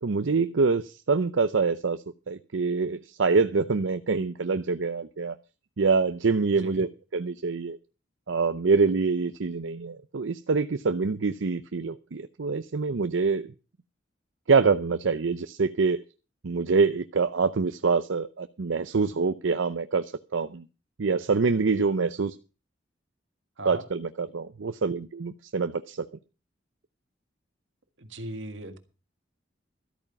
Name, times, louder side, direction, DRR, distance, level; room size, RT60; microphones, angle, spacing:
voice 1, 0.0-2.0 2.3-5.4 5.8-7.8 8.3-13.5 14.5-16.0 16.4-20.0 20.3-20.6 21.0-22.3 23.7-26.1, right 4 dB, 90° right, 0.6 m, -25 dB
voice 2, 28.0-28.8, right 1 dB, 75° right, 1.8 m, -38 dB
13.5 x 8.9 x 5.8 m
head